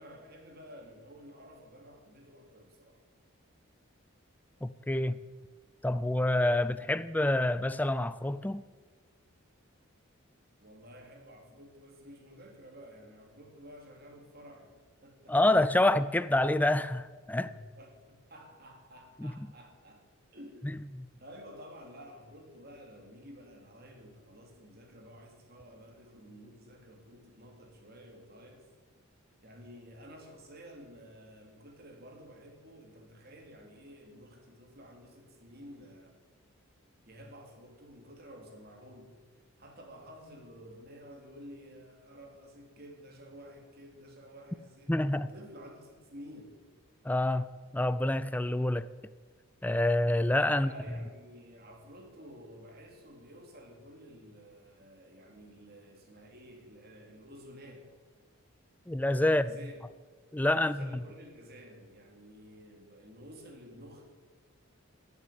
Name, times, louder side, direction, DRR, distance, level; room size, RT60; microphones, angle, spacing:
voice 1, 0.0-3.0 10.6-15.4 17.4-20.0 20.3-20.7 21.2-28.7 29.4-36.2 37.1-39.1 39.6-46.6 50.5-57.9 59.2-59.8 60.6-64.1, equal, 45° right, 3.1 m, -51 dB
voice 2, 4.6-5.2 5.8-8.6 15.3-17.5 19.2-19.5 21.0-21.1 44.9-45.3 47.0-48.9 49.6-50.7 58.9-59.5 60.3-60.9, left 1 dB, 10° left, 0.3 m, -27 dB
15.0 x 8.5 x 9.5 m
head